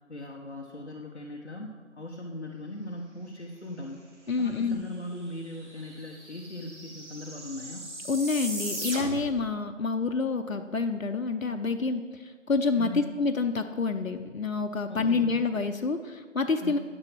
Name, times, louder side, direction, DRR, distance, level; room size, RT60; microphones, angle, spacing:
voice 1, 0.0-4.0 4.4-7.9 12.8-13.1 14.9-15.4 16.6-16.8, left 1 dB, 55° left, 0 dB, 1.0 m, -39 dB
voice 2, 4.3-4.9 8.1-16.8, left 4 dB, 90° left, 6 dB, 0.8 m, -28 dB
sound 1, 4.9-5.0 5.2-9.4, right 1 dB, 60° right, 2.2 m, -38 dB
10.5 x 6.2 x 6.0 m, 1.5 s
figure-of-eight pair, 175°, 39 cm